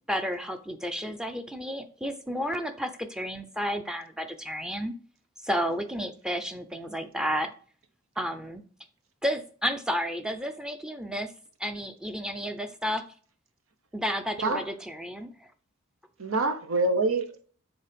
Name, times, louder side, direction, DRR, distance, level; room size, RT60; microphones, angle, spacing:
voice 1, 0.1-4.9 5.4-7.5 8.2-8.6 9.2-11.3 11.6-13.0 13.9-15.5, equal, 5° right, 7 dB, 0.5 m, -32 dB
voice 2, 16.2-17.4, right 2 dB, 75° right, 7 dB, 0.9 m, -26 dB
7.2 x 3.8 x 5.1 m, 0.43 s
head